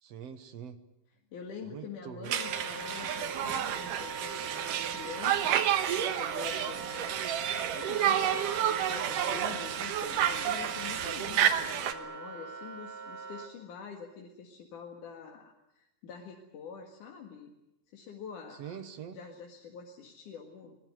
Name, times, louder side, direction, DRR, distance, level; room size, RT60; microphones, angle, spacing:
voice 1, 0.0-0.8 1.7-2.3 18.6-19.2, right 8 dB, 60° right, 10 dB, 2.1 m, -43 dB
voice 2, 1.3-5.6 6.1-7.2 7.7-17.5 17.9-18.8 19.1-20.8, left 6 dB, 70° left, 1 dB, 3.4 m, -46 dB
Wind instrument woodwind instrument, 2.3-13.5, right 4 dB, 5° right, 2.6 m, -42 dB
Conversation, 2.3-11.9, right 10 dB, 80° right, 2.9 m, -30 dB
23.0 x 20.0 x 9.4 m, 0.90 s
omnidirectional pair, 3.8 m